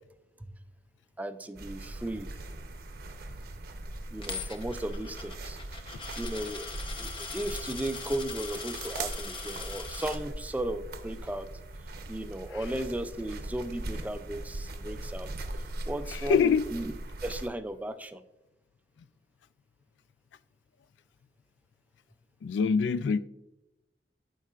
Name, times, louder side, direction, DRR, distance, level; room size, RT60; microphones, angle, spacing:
voice 1, 1.2-2.3 4.1-5.6 6.2-11.5 12.1-15.3 15.8-16.9 17.2-18.2, right 1 dB, 10° right, 0.3 m, -36 dB
sound 1, 1.6-17.5, right 2 dB, 60° right, 0.7 m, -40 dB
Coin (dropping), 4.2-10.2, left 4 dB, 30° left, 0.8 m, -41 dB
voice 2, 16.1-16.6 22.4-23.2, left 6 dB, 80° left, 0.3 m, -24 dB
13.5 x 4.6 x 2.4 m
head